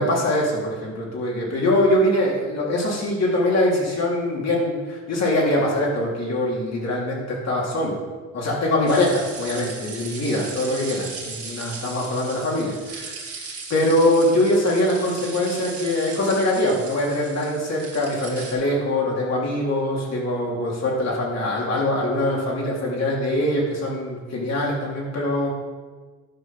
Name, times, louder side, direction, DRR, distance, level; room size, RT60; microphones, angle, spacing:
voice 1, 0.0-8.0 8.3-13.1 13.7-25.5, left 1 dB, 60° left, -3 dB, 3.4 m, -23 dB
sound 1, 8.9-18.5, right 4 dB, 50° right, 2.5 m, -37 dB
11.0 x 5.6 x 5.7 m, 1.4 s
cardioid pair, 90°, 30 cm